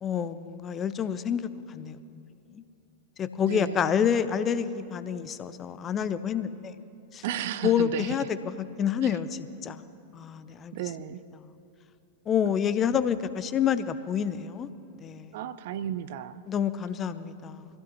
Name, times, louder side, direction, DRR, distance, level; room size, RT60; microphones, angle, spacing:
voice 1, 0.0-2.2 3.2-6.7 7.1-7.2 7.6-8.2 8.8-9.3 9.6-9.8 10.1-10.7 12.3-14.7 15.0-15.3 16.5-17.7, left 8 dB, 25° left, 13 dB, 0.6 m, -28 dB
voice 2, 3.4-3.9 7.2-8.3 9.0-9.2 10.7-11.2 15.3-16.4, right 11 dB, 50° right, 14 dB, 0.5 m, -34 dB
24.5 x 16.5 x 2.9 m, 2.7 s
figure-of-eight pair, 90°, 0 cm